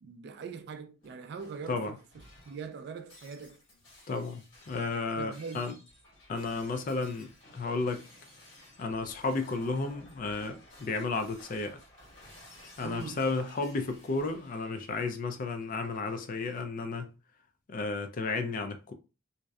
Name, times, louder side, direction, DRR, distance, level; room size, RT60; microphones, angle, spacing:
voice 1, 0.0-1.8 2.5-3.6 5.2-5.7 12.8-13.3, right 5 dB, 55° right, 0.3 m, -41 dB
Shatter, 1.0-16.6, left 1 dB, 75° left, 1.4 m, -55 dB
voice 2, 4.1-5.7 6.3-8.0 8.8-11.8 12.8-17.1 17.7-18.9, left 3 dB, 45° left, 0.3 m, -33 dB
2.6 x 2.0 x 2.3 m
head